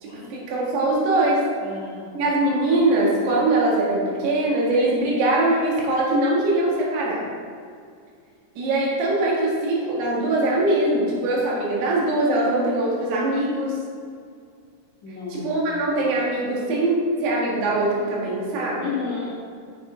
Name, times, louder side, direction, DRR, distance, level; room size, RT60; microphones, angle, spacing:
voice 1, 0.0-1.4 2.1-7.2 8.6-13.8 15.3-16.9 17.2-18.8, right 2 dB, 75° right, -4 dB, 3.7 m, -22 dB
voice 2, 0.5-0.9 1.6-2.2 15.0-15.5 18.8-19.3, left 5 dB, 65° left, -10 dB, 1.0 m, -33 dB
7.2 x 6.8 x 5.0 m, 2.2 s
omnidirectional pair, 4.8 m